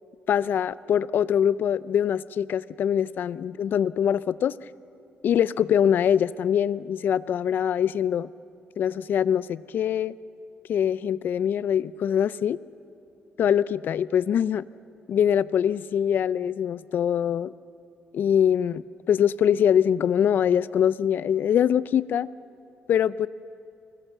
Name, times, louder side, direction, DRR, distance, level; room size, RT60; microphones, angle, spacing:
voice 1, 0.3-4.5 5.2-8.3 8.8-10.1 10.7-12.6 13.4-14.7 15.1-17.5 18.1-22.3 22.9-23.3, left 9 dB, 65° left, 18 dB, 0.5 m, -23 dB
24.5 x 20.5 x 7.2 m, 2.6 s
cardioid pair, 90°, 4 cm